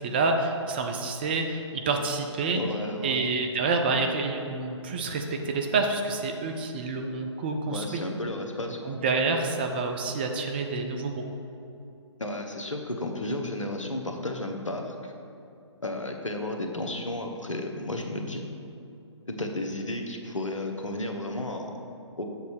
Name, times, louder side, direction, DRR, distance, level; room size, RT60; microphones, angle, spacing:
voice 1, 0.0-2.6 3.0-8.0 8.8-11.2, right 3 dB, 20° right, 4 dB, 0.4 m, -28 dB
voice 2, 2.5-3.3 7.7-9.0 12.2-15.1 15.8-18.5 19.3-21.8 22.2-22.3, left 1 dB, 85° left, 3 dB, 1.0 m, -33 dB
7.1 x 4.0 x 6.5 m, 2.7 s
figure-of-eight pair, 140°, 16 cm